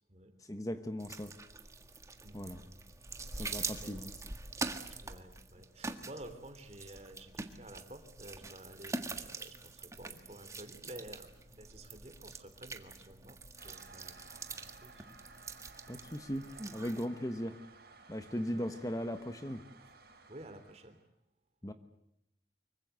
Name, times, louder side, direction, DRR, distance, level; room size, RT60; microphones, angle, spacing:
voice 1, 0.4-1.3 2.3-2.6 3.3-4.1 15.9-17.6 18.1-19.6 21.6-21.7, equal, 20° left, 9 dB, 1.2 m, -38 dB
sound 1, 1.0-17.1, right 3 dB, 15° right, 1.6 m, -44 dB
voice 2, 2.2-2.9 3.3-4.1 5.0-13.4 13.6-15.1 18.3-18.7 20.3-21.0, right 1 dB, 35° right, 8 dB, 3.1 m, -52 dB
Toilet flush, 13.6-21.1, right 3 dB, 60° right, 4.5 m, -57 dB
25.0 x 23.0 x 8.2 m, 0.81 s
head